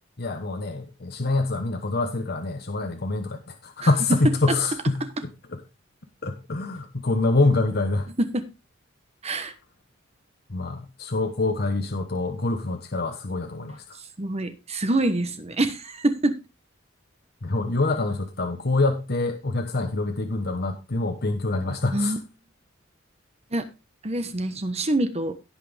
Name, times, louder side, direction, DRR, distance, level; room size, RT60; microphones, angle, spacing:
voice 1, 0.2-5.0 6.2-8.1 10.5-14.0 17.4-22.2, left 2 dB, 55° left, 6 dB, 1.1 m, -25 dB
voice 2, 3.8-4.2 8.2-8.4 9.2-9.5 14.2-16.4 21.9-22.2 23.5-23.7 24.0-25.4, right 1 dB, 35° right, 9 dB, 1.2 m, -25 dB
17.0 x 6.0 x 3.4 m, 0.27 s
head